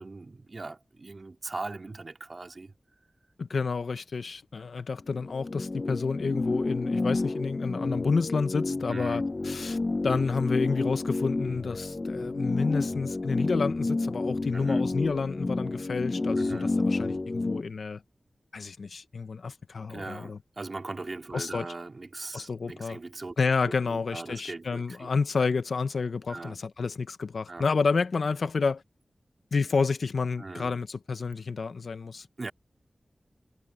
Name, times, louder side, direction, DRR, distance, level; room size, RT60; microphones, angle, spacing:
voice 1, 0.0-2.7 8.9-9.2 14.5-14.8 16.4-16.7 19.9-23.4 23.8-25.1 26.3-26.6 27.5-27.7 30.4-30.8 32.4-32.5, right 3 dB, 55° right, 3.6 m, -40 dB
voice 2, 3.4-9.8 10.0-18.0 18.5-20.4 21.3-21.7 22.3-23.0 23.4-28.8 29.5-32.3, left 4 dB, 85° left, 1.1 m, -30 dB
sound 1, 5.1-17.6, left 2 dB, 45° left, 0.7 m, -30 dB
cardioid pair, 50°, 0 cm